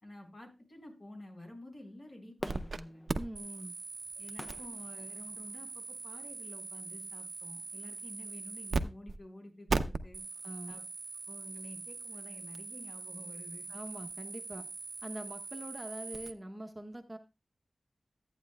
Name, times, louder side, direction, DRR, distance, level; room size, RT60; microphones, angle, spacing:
voice 1, 0.0-3.0 4.1-10.2 10.7-10.8 11.3-13.7, left 1 dB, 55° left, 2 dB, 3.9 m, -50 dB
Fireworks, 2.4-5.7 6.3-6.4, left 1 dB, 30° left, 0.5 m, -47 dB
sound 1, 2.5-2.8 3.1-8.8 9.1-9.2 9.7-16.3, right 4 dB, 75° right, 0.6 m, -40 dB
voice 2, 3.1-3.7 10.4-10.8 13.7-14.7 15.0-17.2, right 1 dB, 20° right, 5 dB, 0.8 m, -43 dB
13.5 x 8.9 x 2.3 m, 0.28 s
wide cardioid pair, 85°, 0 cm